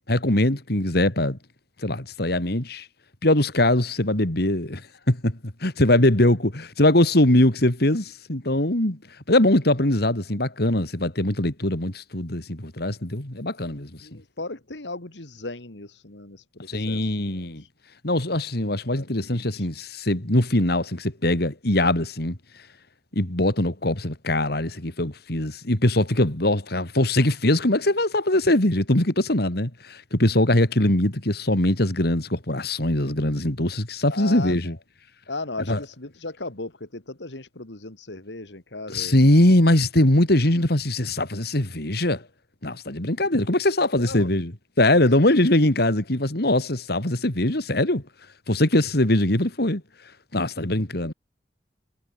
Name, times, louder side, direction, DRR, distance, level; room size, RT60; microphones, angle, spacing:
voice 1, 0.0-1.4 1.8-2.8 3.2-4.8 5.1-9.0 9.3-14.2 16.7-17.6 18.0-22.4 23.1-34.8 35.7-35.8 38.9-42.2 42.6-44.5 44.8-48.0 48.5-49.8 50.3-51.1, left 1 dB, 60° left, 3.1 m, -22 dB
voice 2, 14.0-17.7 18.9-19.7 34.1-34.8 35.3-39.2 43.8-44.3 45.2-45.3 51.0-51.1, left 2 dB, 85° left, 2.6 m, -37 dB
head